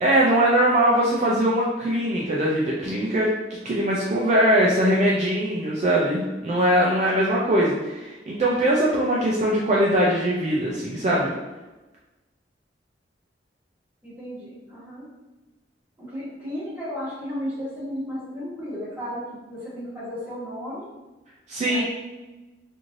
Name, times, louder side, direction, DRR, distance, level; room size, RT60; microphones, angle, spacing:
voice 1, 0.0-3.3 3.6-11.3 21.5-21.8, right 1 dB, 40° right, -5 dB, 0.4 m, -21 dB
voice 2, 14.0-15.1 16.0-19.2 19.5-20.9 21.6-21.8, equal, 10° right, -9 dB, 1.2 m, -34 dB
3.1 x 2.6 x 2.5 m, 1.1 s
head